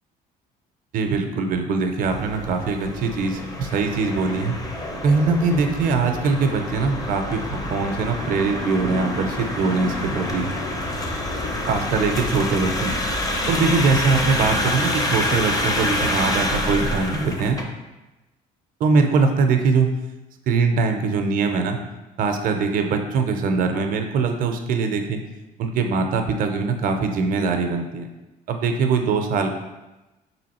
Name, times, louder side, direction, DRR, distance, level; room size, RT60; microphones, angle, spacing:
voice 1, 0.9-4.6 5.0-10.5 11.7-12.9 13.5-17.6 18.8-19.9 20.5-21.8 22.2-25.2 25.6-28.1 28.5-29.6, right 4 dB, 55° right, 5 dB, 0.5 m, -22 dB
sound 1, 2.0-17.6, left 1 dB, 20° left, 0.5 m, -27 dB
3.1 x 2.9 x 4.1 m, 1.0 s
cardioid pair, 110°, 17 cm